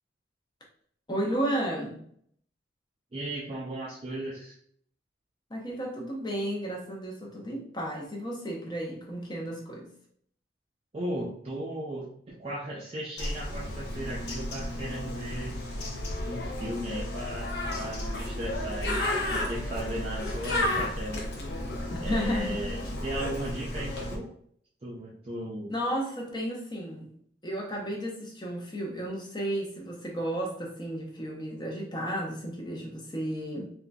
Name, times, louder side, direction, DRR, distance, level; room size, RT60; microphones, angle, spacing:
voice 1, 1.1-2.0 5.5-9.9 21.9-22.7 25.7-27.1 27.4-33.7, equal, 20° left, -1 dB, 0.6 m, -33 dB
voice 2, 3.1-4.6 10.9-15.6 16.3-21.2 22.0-24.3 24.8-25.7, right 1 dB, 30° right, -4 dB, 0.4 m, -36 dB
Bird, 13.2-24.2, left 1 dB, 60° left, 0.7 m, -33 dB
3.5 x 2.5 x 2.2 m, 0.64 s
head